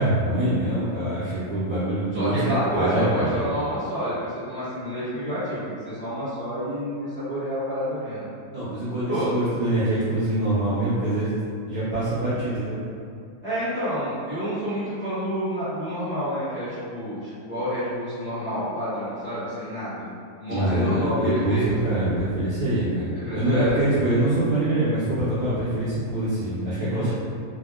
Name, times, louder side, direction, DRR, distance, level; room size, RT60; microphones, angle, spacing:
voice 1, 0.0-3.3 8.5-11.3 11.6-12.8 20.5-27.1, right 1 dB, 65° right, -11 dB, 1.0 m, -24 dB
voice 2, 2.1-8.3 9.1-9.3 13.4-20.1 20.4-21.9 23.2-23.8 26.9-27.1, equal, 25° left, -15 dB, 0.9 m, -29 dB
3.4 x 2.1 x 2.4 m, 2.3 s
omnidirectional pair, 2.1 m